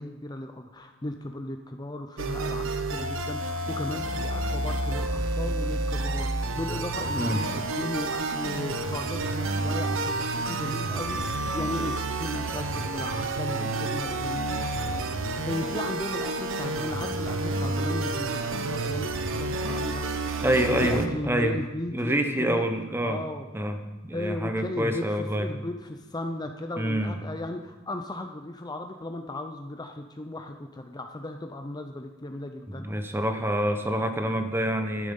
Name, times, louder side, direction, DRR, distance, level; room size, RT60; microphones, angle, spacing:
voice 1, 0.0-15.0 15.5-20.1 20.8-22.6 23.0-23.5 24.1-32.9, left 1 dB, 20° left, 6 dB, 0.6 m, -36 dB
sound 1, 2.2-21.1, right 2 dB, 65° right, 0.9 m, -30 dB
voice 2, 20.4-21.5 21.9-23.2 23.5-23.7 24.0-25.5 26.8-27.1 32.7-35.1, right 1 dB, 10° right, 6 dB, 1.0 m, -26 dB
12.5 x 10.0 x 5.4 m, 1.2 s
head